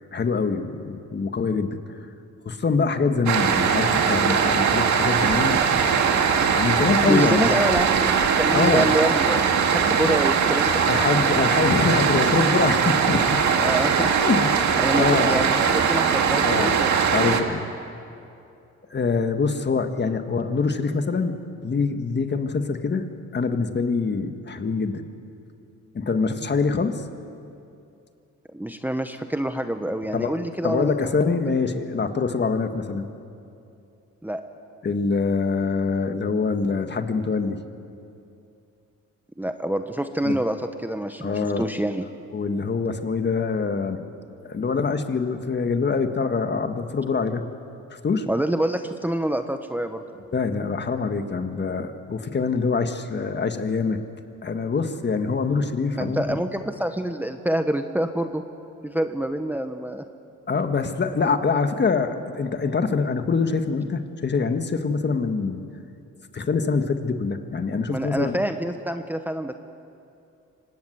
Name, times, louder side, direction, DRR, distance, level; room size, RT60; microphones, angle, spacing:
voice 1, 0.1-1.8 2.4-5.6 6.5-7.5 8.5-8.9 10.0-10.2 10.9-13.4 14.2-15.5 16.4-16.7 17.1-17.6 18.9-23.0 23.3-25.0 25.9-27.0 30.1-30.3 30.6-33.1 34.8-37.6 40.2-40.4 41.2-41.7 42.3-44.0 44.4-47.4 47.9-48.3 50.3-54.0 54.4-56.4 60.5-65.6 66.3-68.4, left 4 dB, 35° left, 7 dB, 1.7 m, -24 dB
sound 1, 3.3-17.4, right 6 dB, 65° right, 2.1 m, -21 dB
voice 2, 7.1-10.8 13.6-14.1 14.8-17.5 28.5-31.2 34.2-34.4 39.4-40.6 40.8-42.1 48.3-50.0 56.0-58.4 58.8-60.0 67.9-69.5, right 1 dB, 5° right, 7 dB, 1.0 m, -26 dB
25.0 x 19.5 x 8.0 m, 2.6 s
cardioid pair, 90°, 30 cm